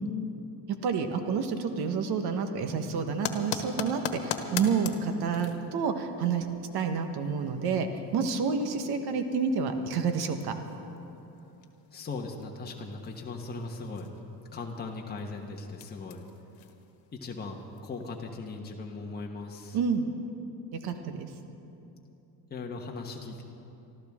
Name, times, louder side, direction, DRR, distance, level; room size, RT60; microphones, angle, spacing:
voice 1, 0.8-6.5 6.7-10.5 19.7-20.1 20.8-21.3, right 5 dB, 60° right, 7 dB, 1.4 m, -29 dB
sound 1, 3.1-18.3, left 8 dB, 85° left, 1.4 m, -43 dB
voice 2, 11.9-14.1 14.5-16.2 17.1-19.8 22.5-23.4, left 3 dB, 20° left, 0 dB, 1.3 m, -38 dB
24.5 x 13.5 x 3.7 m, 2.9 s
cardioid pair, 120°, 43 cm